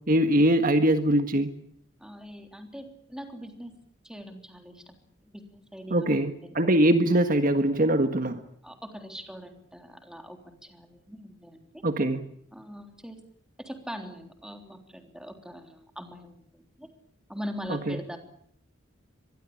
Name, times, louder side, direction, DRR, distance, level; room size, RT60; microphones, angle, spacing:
voice 1, 0.1-1.5 5.9-8.4 11.8-12.2 17.7-18.0, right 1 dB, 45° right, 8 dB, 1.6 m, -22 dB
voice 2, 2.0-3.8 4.0-5.0 5.2-6.6 8.6-11.8 12.5-13.2 13.6-16.9 17.3-18.2, equal, 5° right, 5 dB, 3.5 m, -42 dB
24.5 x 20.5 x 8.5 m, 0.64 s
head